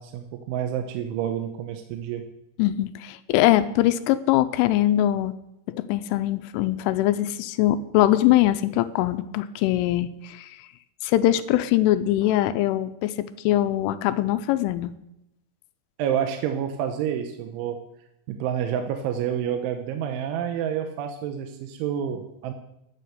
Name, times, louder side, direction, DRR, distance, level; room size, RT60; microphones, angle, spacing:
voice 1, 0.0-2.2 16.0-17.8 18.3-22.5, right 9 dB, 80° right, 5 dB, 3.3 m, -28 dB
voice 2, 2.6-5.3 5.7-10.6 11.0-14.9, left 14 dB, 85° left, 11 dB, 3.1 m, -22 dB
12.0 x 9.2 x 6.7 m, 0.85 s
omnidirectional pair, 5.5 m